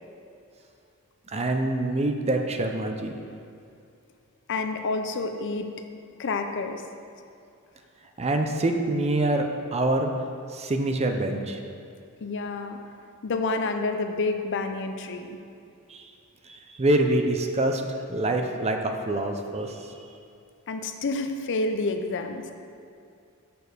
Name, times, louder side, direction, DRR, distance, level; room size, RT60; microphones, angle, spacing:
voice 1, 1.3-3.1 8.2-10.1 10.5-11.6 15.9-16.0 16.5-17.8 18.1-19.7, right 1 dB, 30° right, 4 dB, 0.6 m, -25 dB
voice 2, 4.5-5.7 6.2-6.8 12.2-12.8 13.2-15.4 20.7-22.5, left 3 dB, 60° left, 7 dB, 0.6 m, -29 dB
6.8 x 6.4 x 5.1 m, 2.4 s
head